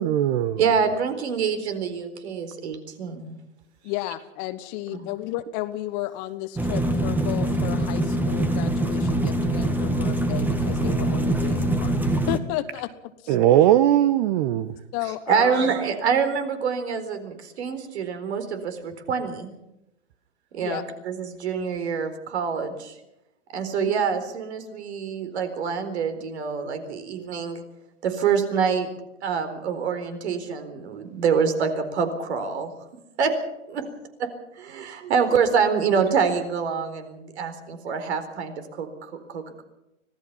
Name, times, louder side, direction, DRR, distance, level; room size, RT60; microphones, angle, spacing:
voice 1, 0.0-0.6 13.3-14.7, right 12 dB, 40° right, 13 dB, 1.1 m, -19 dB
voice 2, 0.6-3.4 4.9-5.0 15.0-19.5 20.5-23.0 23.5-27.6 28.0-28.9 29.2-32.7 33.2-33.4 33.7-33.8 34.5-39.6, right 6 dB, 60° right, 8 dB, 4.2 m, -26 dB
voice 3, 3.8-12.0 12.3-12.9 14.9-15.7 20.6-20.8 23.7-24.2, left 15 dB, 30° left, 12 dB, 1.2 m, -33 dB
sound 1, 6.6-12.4, right 1 dB, 5° right, 1.5 m, -24 dB
25.5 x 18.0 x 5.7 m, 0.88 s
hypercardioid pair, 125°, 38 cm